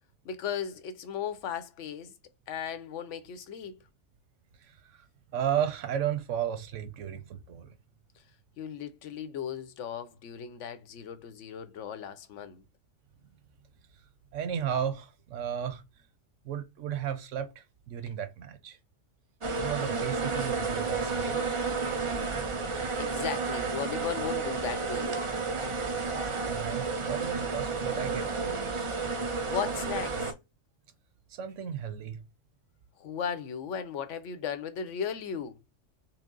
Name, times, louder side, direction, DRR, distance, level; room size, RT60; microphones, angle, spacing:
voice 1, 0.2-2.1 2.5-3.8 8.6-12.6 23.0-25.3 29.5-30.3 33.0-35.6, left 8 dB, 80° left, 1.0 m, -36 dB
voice 2, 4.6-5.0 5.3-7.7 14.3-15.8 16.4-18.8 19.6-21.5 26.5-28.9 31.3-32.2, right 9 dB, 85° right, 1.1 m, -34 dB
sound 1, 19.4-30.3, right 4 dB, 35° right, 0.6 m, -31 dB
5.9 x 2.1 x 3.8 m
omnidirectional pair, 1.2 m